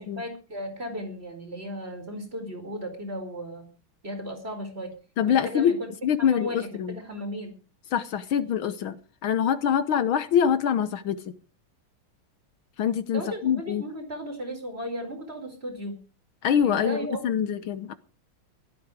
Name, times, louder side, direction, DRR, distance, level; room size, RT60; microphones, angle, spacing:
voice 1, 0.0-3.7 4.0-4.9 5.3-5.9 6.2-7.6 13.1-16.0 16.6-17.2, equal, 25° right, 4.8 m, -35 dB
voice 2, 5.2-5.8 6.0-7.0 7.9-9.0 9.2-11.3 12.8-13.8 16.4-17.9, left 8 dB, 75° left, 1.7 m, -24 dB
16.0 x 13.0 x 4.9 m
omnidirectional pair, 2.4 m